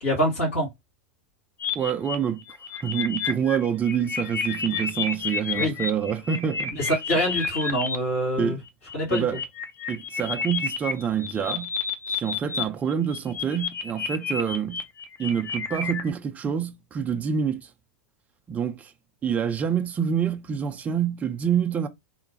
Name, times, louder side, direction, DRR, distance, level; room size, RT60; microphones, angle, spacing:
voice 1, 0.0-0.7 5.6-5.7 6.7-8.6 8.9-9.2, equal, 80° left, 1.8 m, -25 dB
sound 1, 1.6-8.0 8.7-12.6 12.9-16.1, left 5 dB, 30° left, 0.6 m, -30 dB
voice 2, 1.7-2.4 2.8-6.7 8.4-8.6 9.1-9.4 9.9-11.7 12.1-14.8 15.2-17.7 18.5-18.9 19.2-21.9, right 8 dB, 20° right, 0.4 m, -27 dB
3.1 x 2.1 x 2.7 m
figure-of-eight pair, 90°, 7 cm